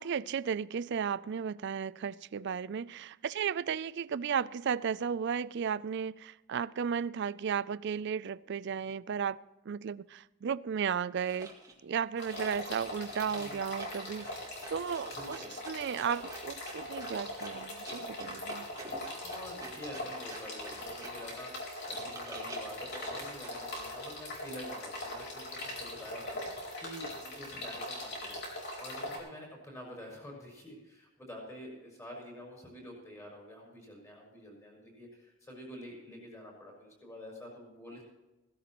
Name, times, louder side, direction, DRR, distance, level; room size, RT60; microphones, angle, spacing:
voice 1, 0.0-9.4 9.7-11.5 11.8-15.4 15.7-18.7, right 7 dB, 50° right, 0.3 m, -34 dB
sound 1, 11.3-11.7 12.2-21.3 21.7-23.6, right 2 dB, 15° right, 2.0 m, -48 dB
sound 2, 12.2-29.2, left 1 dB, 50° left, 4.1 m, -41 dB
voice 2, 13.3-13.7 15.1-15.6 19.1-28.4 28.8-38.0, equal, 15° left, 5.8 m, -48 dB
16.5 x 16.0 x 3.0 m
head